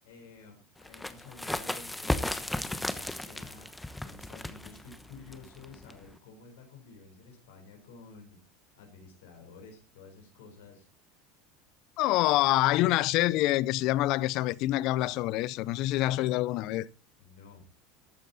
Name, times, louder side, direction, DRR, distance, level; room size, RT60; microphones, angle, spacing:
voice 1, 0.0-8.4 8.8-10.9 17.2-17.6, left 4 dB, 80° left, 4.0 m, -52 dB
sound 1, 0.8-6.2, left 1 dB, 5° left, 1.1 m, -35 dB
voice 2, 12.0-16.9, left 17 dB, 60° left, 0.6 m, -26 dB
14.0 x 9.1 x 4.1 m
supercardioid pair, 105°, 0 cm